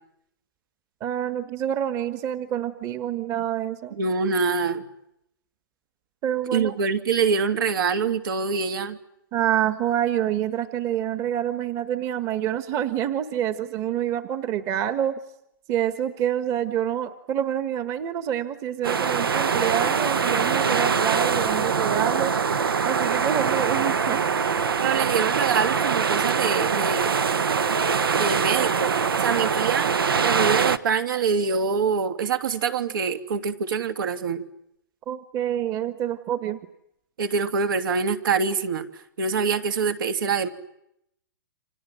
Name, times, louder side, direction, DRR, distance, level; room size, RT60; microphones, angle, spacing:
voice 1, 1.0-4.0 6.2-6.7 9.3-15.2 15.7-22.3 22.8-24.3 35.1-36.6, right 10 dB, 25° right, 11 dB, 1.5 m, -27 dB
voice 2, 4.0-4.9 6.5-9.0 24.8-27.1 28.1-28.9 29.2-29.9 30.2-34.4 37.2-38.8 39.2-40.5, right 5 dB, 70° right, 8 dB, 3.0 m, -25 dB
sound 1, 18.8-30.8, right 6 dB, 90° right, 1.4 m, -23 dB
29.5 x 26.5 x 7.6 m, 0.78 s
hypercardioid pair, 145°, 12 cm